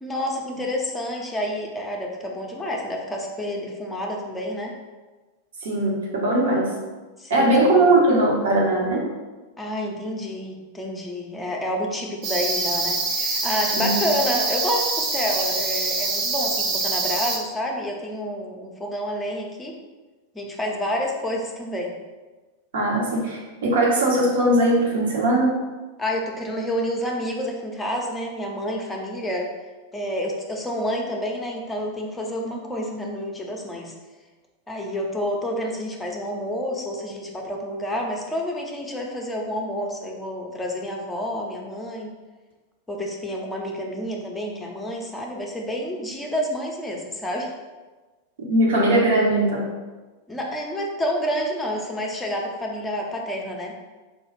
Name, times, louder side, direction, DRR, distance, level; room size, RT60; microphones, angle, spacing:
voice 1, 0.0-4.7 7.2-7.5 9.6-19.8 20.3-21.9 26.0-29.5 29.9-33.9 34.7-42.1 42.9-47.5 50.3-53.7, equal, 10° left, 0 dB, 0.6 m, -29 dB
voice 2, 5.6-6.7 7.3-9.0 13.8-14.0 22.7-25.5 48.4-49.7, right 1 dB, 60° right, -2 dB, 0.9 m, -20 dB
sound 1, 12.2-17.4, right 3 dB, 35° right, 0.6 m, -25 dB
4.3 x 2.3 x 3.2 m, 1.3 s
figure-of-eight pair, 90°, 0 cm